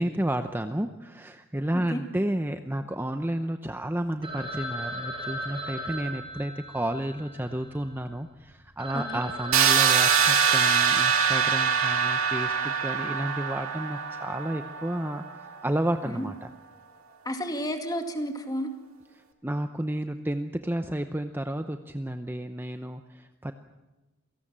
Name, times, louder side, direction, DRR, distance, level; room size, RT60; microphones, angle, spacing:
voice 1, 0.0-16.5 19.1-23.5, right 1 dB, 10° right, 7 dB, 0.7 m, -31 dB
Telephone, 4.2-8.0 8.5-8.6 8.8-11.7, equal, 25° right, 6.5 m, -37 dB
sound 1, 9.5-15.3, right 7 dB, 75° right, 2.3 m, -24 dB
voice 2, 17.2-18.7, equal, 20° left, 5 dB, 2.2 m, -31 dB
27.0 x 18.0 x 7.4 m, 1.1 s
head